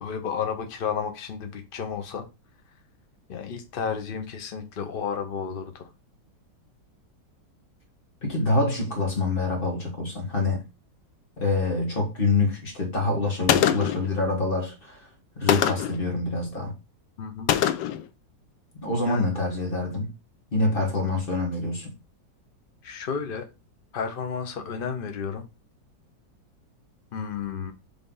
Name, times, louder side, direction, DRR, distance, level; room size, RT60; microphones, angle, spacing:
voice 1, 0.0-2.3 3.3-5.9 17.2-17.5 19.1-19.3 22.8-23.5 23.9-25.4 27.1-27.7, left 6 dB, 60° left, 0.5 m, -32 dB
voice 2, 8.2-10.6 11.4-15.0 15.4-16.7 18.8-20.1 20.5-21.9, left 3 dB, 30° left, 1.9 m, -26 dB
Gunshot gunfire, 13.5-14.1 15.5-16.0 17.5-18.0, left 10 dB, 80° left, 1.3 m, -23 dB
5.4 x 3.4 x 5.4 m
omnidirectional pair, 2.0 m